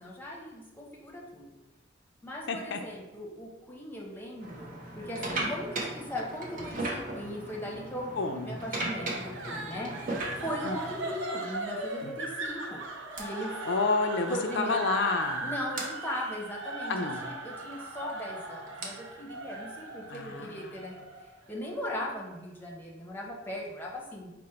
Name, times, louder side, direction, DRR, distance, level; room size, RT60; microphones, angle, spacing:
voice 1, 0.0-1.5 2.2-8.1 8.4-9.9 10.4-12.8 13.2-13.5 14.3-14.8 15.4-21.0 21.5-24.4, equal, 10° left, -3 dB, 0.8 m, -38 dB
voice 2, 2.5-2.8 8.2-8.5 10.6-10.8 12.0-12.1 13.7-15.4 16.9-17.2 20.1-20.5, left 3 dB, 70° left, 5 dB, 0.5 m, -29 dB
sound 1, 4.4-11.2 12.0-12.2 13.2-13.3 14.6-14.7 14.9-15.1 15.8-15.9 17.7-20.8, right 2 dB, 45° right, 0.8 m, -37 dB
sound 2, 8.9-22.1, right 2 dB, 80° right, 0.6 m, -39 dB
5.0 x 2.1 x 4.3 m, 1.0 s
head